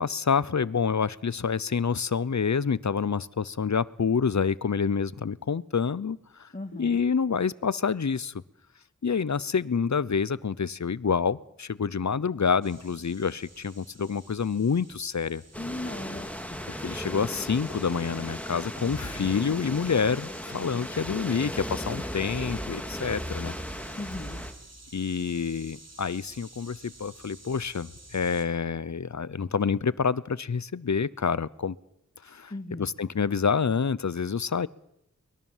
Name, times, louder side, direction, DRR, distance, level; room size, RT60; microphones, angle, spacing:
voice 1, 0.0-8.3 9.0-15.4 16.8-23.6 24.9-31.8 32.2-32.5 32.8-34.7, left 6 dB, 70° left, 19 dB, 0.8 m, -27 dB
voice 2, 6.5-7.0 15.6-16.7 24.0-24.4 32.5-32.9, left 2 dB, 30° left, 5 dB, 1.9 m, -38 dB
sound 1, 12.6-28.5, right 2 dB, 60° right, 4.0 m, -52 dB
sound 2, 15.5-24.5, equal, 5° left, 2.5 m, -36 dB
23.5 x 21.0 x 7.4 m, 0.80 s
wide cardioid pair, 55°, 30 cm